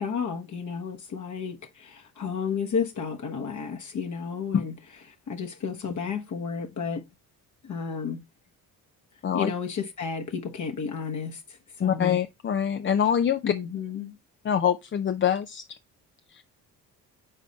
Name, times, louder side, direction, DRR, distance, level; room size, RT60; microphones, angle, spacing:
voice 1, 0.0-4.7 5.3-7.0 7.6-8.2 9.3-12.1 13.4-14.2, left 6 dB, 50° left, 1.1 m, -32 dB
voice 2, 11.8-13.4 14.4-15.6 16.3-16.4, left 8 dB, 30° left, 0.5 m, -24 dB
5.7 x 4.1 x 4.1 m
supercardioid pair, 70°, 38 cm